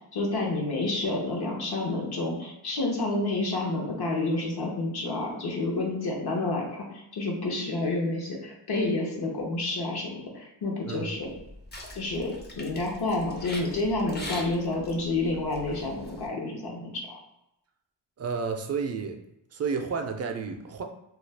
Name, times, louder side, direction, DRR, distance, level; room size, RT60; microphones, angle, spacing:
voice 1, 0.1-6.9 7.1-11.3 11.9-17.2, left 2 dB, 60° left, -1 dB, 0.8 m, -29 dB
sound 1, 11.2-16.3, left 1 dB, 25° left, 0.5 m, -42 dB
voice 2, 18.2-19.2 19.5-20.8, right 5 dB, 40° right, 5 dB, 0.4 m, -31 dB
2.4 x 2.2 x 3.3 m, 0.87 s
wide cardioid pair, 95°, 43 cm